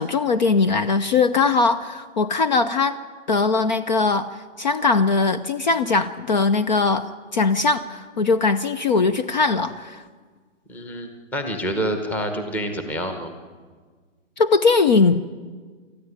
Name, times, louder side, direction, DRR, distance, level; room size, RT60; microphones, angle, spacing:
voice 1, 0.0-3.0 3.3-4.3 4.6-10.0 14.4-15.2, left 4 dB, 35° left, 13 dB, 0.7 m, -20 dB
voice 2, 10.7-13.3, equal, 5° left, 6 dB, 1.0 m, -27 dB
27.5 x 13.5 x 9.7 m, 1.5 s
hypercardioid pair, 160°, 38 cm